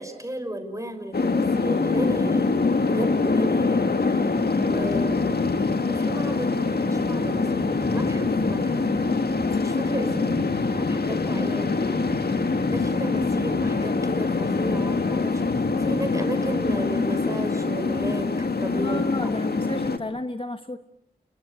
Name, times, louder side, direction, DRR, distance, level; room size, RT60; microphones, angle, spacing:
voice 1, 0.0-4.3 4.6-5.4 5.9-8.8 9.6-10.4 10.7-12.0 12.7-19.3, right 1 dB, 20° right, 7 dB, 6.0 m, -34 dB
sound 1, 1.1-20.0, left 3 dB, 65° left, 1.9 m, -24 dB
sound 2, 3.9-6.0 6.6-9.3 9.8-12.1, right 2 dB, 70° right, 7.6 m, -43 dB
voice 2, 18.7-20.8, left 2 dB, 30° left, 8 dB, 1.2 m, -30 dB
29.0 x 23.0 x 8.1 m, 0.79 s
wide cardioid pair, 70°, 18 cm